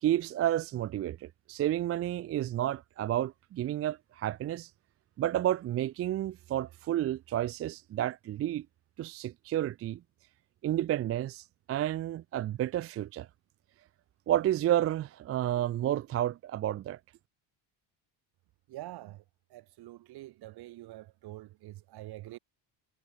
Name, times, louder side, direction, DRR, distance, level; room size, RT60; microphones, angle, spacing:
voice 1, 0.0-4.7 5.2-8.7 9.0-10.0 10.6-13.3 14.3-17.0, right 12 dB, 35° right, 0.4 m, -31 dB
voice 2, 18.7-19.2 19.5-22.4, right 16 dB, 55° right, 1.0 m, -46 dB
cardioid pair, 145°, 47 cm